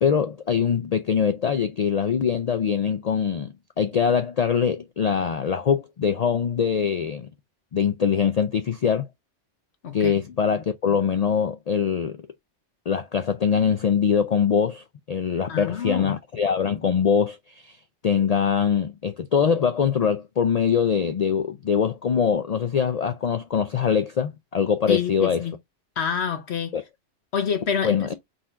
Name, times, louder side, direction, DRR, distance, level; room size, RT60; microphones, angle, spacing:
voice 1, 0.0-7.3 7.7-9.1 9.9-12.2 12.9-17.8 18.0-25.4 26.7-26.8 27.8-28.1, left 7 dB, 85° left, 0.3 m, -23 dB
voice 2, 9.8-10.2 15.5-16.2 24.9-25.5 26.0-26.8 27.3-28.1, left 7 dB, 65° left, 1.1 m, -27 dB
3.9 x 2.5 x 4.4 m
omnidirectional pair, 1.2 m